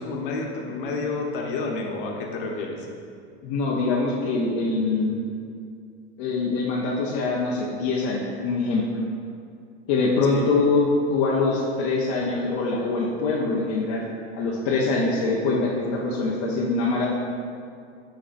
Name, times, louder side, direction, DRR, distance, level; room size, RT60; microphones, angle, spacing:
voice 1, 0.0-2.9 10.3-10.5, left 3 dB, 50° left, 0 dB, 0.9 m, -30 dB
voice 2, 3.4-5.2 6.2-8.8 9.9-14.0 14.3-17.1, left 3 dB, 30° left, -4 dB, 0.4 m, -24 dB
8.2 x 5.1 x 2.5 m, 2.3 s
supercardioid pair, 165°, 35 cm